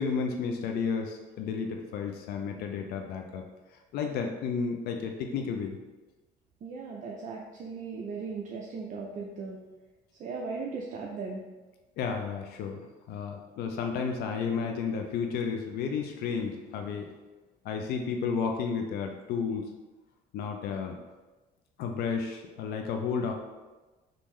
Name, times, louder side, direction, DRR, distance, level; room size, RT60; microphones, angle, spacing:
voice 1, 0.0-3.4 3.9-5.8 12.0-12.8 13.1-17.1 17.6-19.6 20.3-21.0 21.8-23.3, left 5 dB, 70° left, 4 dB, 0.4 m, -32 dB
voice 2, 6.6-9.6 10.2-11.4, right 4 dB, 50° right, -1 dB, 0.4 m, -37 dB
3.5 x 2.6 x 3.1 m, 1.2 s
cardioid pair, 110°, 17 cm